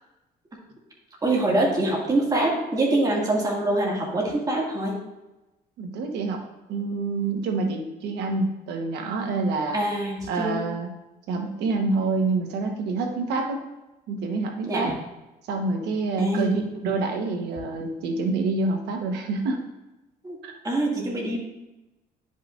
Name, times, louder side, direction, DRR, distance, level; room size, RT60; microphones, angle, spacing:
voice 1, 1.2-4.9 9.7-10.6 14.7-14.9 16.2-16.6 20.2-20.4 20.6-21.4, right 1 dB, 20° right, -3 dB, 2.0 m, -24 dB
voice 2, 5.8-6.4 6.7-9.8 10.3-10.9 11.3-13.6 14.1-14.9 15.5-19.6 20.4-20.5, right 3 dB, 85° right, 4 dB, 1.1 m, -27 dB
9.9 x 5.6 x 2.5 m, 1.0 s
cardioid pair, 110°, 17 cm